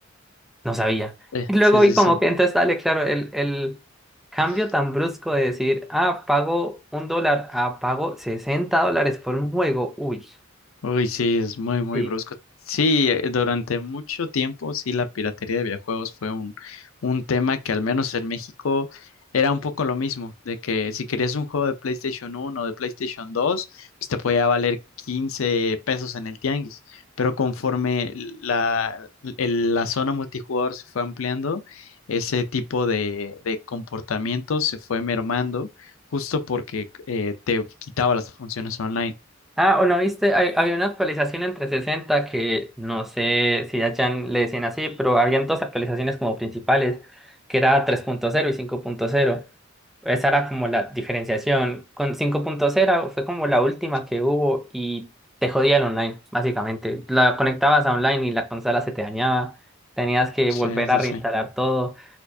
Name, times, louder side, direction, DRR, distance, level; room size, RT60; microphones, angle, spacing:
voice 1, 0.6-1.1 1.5-3.8 4.3-10.2 11.9-12.1 39.6-47.0 47.5-49.4 50.0-55.1 55.4-59.5 60.0-62.1, equal, ahead, 0.5 m, -22 dB
voice 2, 1.3-2.0 10.8-12.3 12.7-19.1 19.3-24.8 25.1-35.7 36.1-37.7 38.0-39.1 60.5-61.2, left 4 dB, 75° left, 0.5 m, -25 dB
4.3 x 2.4 x 2.7 m
head